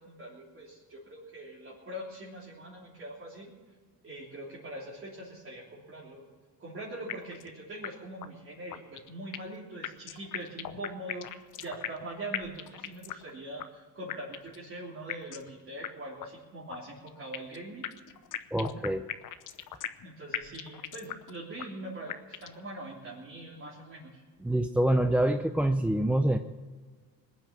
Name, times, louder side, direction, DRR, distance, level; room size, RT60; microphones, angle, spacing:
voice 1, 0.0-3.5 4.0-6.2 6.6-17.9 20.0-24.2, right 1 dB, 30° right, -6 dB, 3.5 m, -42 dB
sound 1, 7.1-7.5 7.8-7.9 8.2-8.3 8.7-9.6 9.8-12.1 12.3-13.3 13.6-13.7 14.1-14.6 15.1-15.5 15.8-15.9 16.2-16.3 16.7-17.6 17.8-20.1 20.3-21.3 21.6-21.7 22.1-22.6, left 12 dB, 50° left, 1.0 m, -38 dB
voice 2, 18.5-19.1 24.4-26.4, right 1 dB, 5° right, 7 dB, 0.5 m, -26 dB
20.5 x 9.3 x 7.3 m, 1.5 s
cardioid pair, 125°, 41 cm